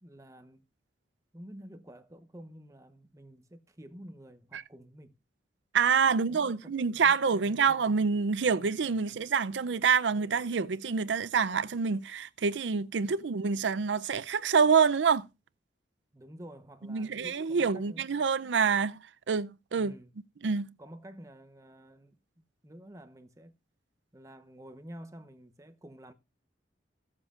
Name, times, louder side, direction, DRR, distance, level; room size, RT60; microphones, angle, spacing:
voice 1, 0.0-0.7 1.3-5.1 6.1-7.9 8.4-9.2 13.0-13.3 16.1-18.2 19.8-20.1 20.8-22.2 22.6-23.5 24.1-26.1, equal, 20° right, 0.9 m, -50 dB
voice 2, 5.7-15.3 16.9-19.0 19.3-19.9 20.4-20.7, right 5 dB, 85° right, 0.5 m, -27 dB
16.0 x 7.4 x 2.5 m
head